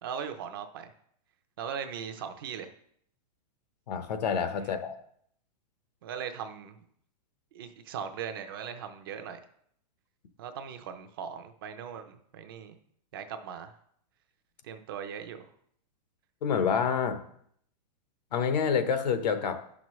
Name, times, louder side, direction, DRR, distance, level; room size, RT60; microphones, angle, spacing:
voice 1, 0.0-0.9 1.6-2.7 4.6-4.8 6.0-6.8 7.5-9.4 10.4-12.8 13.1-13.7 14.6-15.5, right 7 dB, 35° right, 8 dB, 0.5 m, -39 dB
voice 2, 3.9-5.0 16.4-17.2 18.3-19.6, left 6 dB, 75° left, 8 dB, 1.0 m, -27 dB
10.0 x 6.0 x 3.1 m, 0.67 s
supercardioid pair, 180°, 21 cm